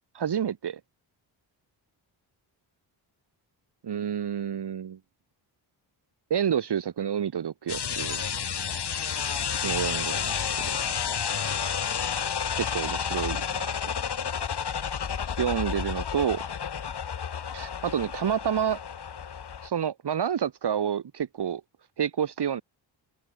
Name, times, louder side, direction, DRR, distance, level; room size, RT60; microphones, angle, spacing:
voice 1, 0.1-0.8 3.8-5.0 6.3-8.2 9.6-10.8 12.7-13.8 15.4-16.4 17.5-18.8 19.6-21.6 22.0-22.6, right 8 dB, 60° right, 1.9 m, -29 dB
sound 1, 7.7-19.7, left 7 dB, 60° left, 3.8 m, -31 dB
open air
cardioid pair, 80°, 46 cm